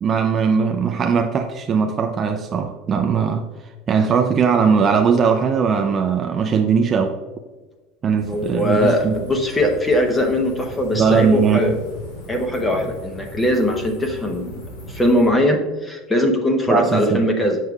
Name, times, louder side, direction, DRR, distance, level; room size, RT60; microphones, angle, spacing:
voice 1, 0.0-3.4 3.9-7.2 8.0-9.1 10.9-11.8 16.7-17.2, right 6 dB, 25° right, 4 dB, 0.4 m, -19 dB
sound 1, 8.2-15.3, left 1 dB, 85° left, 2.1 m, -37 dB
voice 2, 8.3-11.7 12.3-14.6 14.9-17.6, left 1 dB, 10° left, 4 dB, 0.8 m, -20 dB
7.5 x 6.4 x 2.3 m, 1.3 s
cardioid pair, 165°, 0 cm